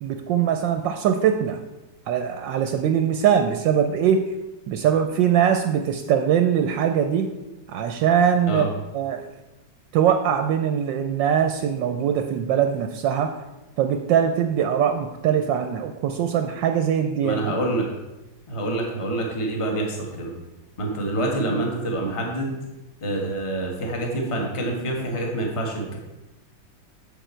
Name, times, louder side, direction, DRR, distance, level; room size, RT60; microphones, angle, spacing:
voice 1, 0.0-1.6 2.1-4.2 4.7-7.3 7.7-8.7 8.9-9.3 9.9-13.3 13.8-17.5, right 8 dB, 75° right, 6 dB, 1.2 m, -22 dB
voice 2, 17.2-17.9 18.5-20.3 20.8-22.6 23.0-26.0, right 1 dB, 20° left, 0 dB, 1.2 m, -26 dB
7.8 x 7.1 x 4.4 m, 1.0 s
omnidirectional pair, 2.1 m